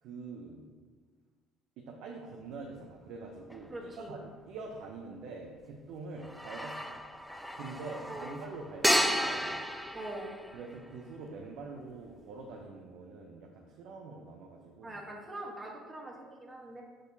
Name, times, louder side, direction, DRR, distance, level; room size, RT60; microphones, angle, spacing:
voice 1, 0.0-0.7 1.8-7.0 7.5-9.5 10.5-15.0, right 3 dB, 70° right, 0 dB, 0.7 m, -45 dB
sound 1, 3.5-3.6 6.2-11.0, equal, ahead, 0.5 m, -33 dB
voice 2, 3.7-4.1 8.1-8.3 9.9-10.3 14.8-16.8, right 1 dB, 25° right, -1 dB, 1.4 m, -43 dB
6.5 x 6.1 x 2.7 m, 1.5 s
hypercardioid pair, 65°, 0 cm